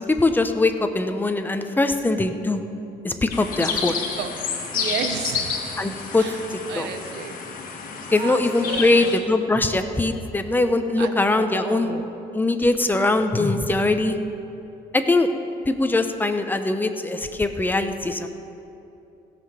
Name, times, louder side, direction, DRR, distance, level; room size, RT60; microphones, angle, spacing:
voice 1, 0.0-2.6 3.0-4.0 5.8-6.9 8.1-11.9 12.3-14.2 14.9-15.3 15.7-18.3, left 2 dB, 10° left, 7 dB, 0.7 m, -22 dB
sound 1, 3.3-9.2, left 6 dB, 55° left, 1.6 m, -30 dB
voice 2, 3.6-4.3 4.7-5.6 6.2-6.4 6.7-7.3 8.1-9.1 11.0-12.1, right 8 dB, 80° right, 7 dB, 1.0 m, -32 dB
16.5 x 6.0 x 6.9 m, 2.8 s
cardioid pair, 110°, 17 cm